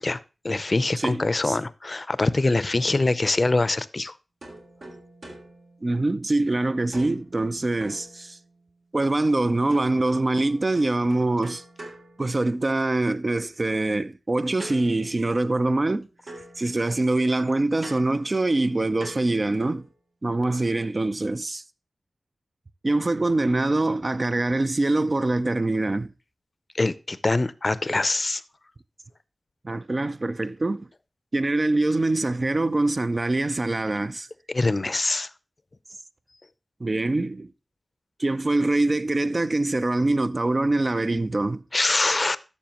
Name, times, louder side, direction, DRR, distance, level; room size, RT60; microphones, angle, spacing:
voice 1, 0.0-4.1 26.7-28.4 34.5-35.3 41.7-42.4, left 2 dB, 45° left, 0.6 m, -24 dB
voice 2, 1.0-1.6 5.8-8.4 8.9-11.6 12.2-16.1 16.6-19.9 20.2-21.6 22.8-26.1 29.6-30.9 31.3-34.3 36.8-37.5 38.2-41.6, right 2 dB, 40° right, 0.5 m, -24 dB
sound 1, 4.4-6.5 6.9-8.8 9.7-12.9 14.6-16.0 16.3-19.9, right 1 dB, 70° right, 3.2 m, -46 dB
12.0 x 7.1 x 3.0 m
cardioid pair, 40°, 0 cm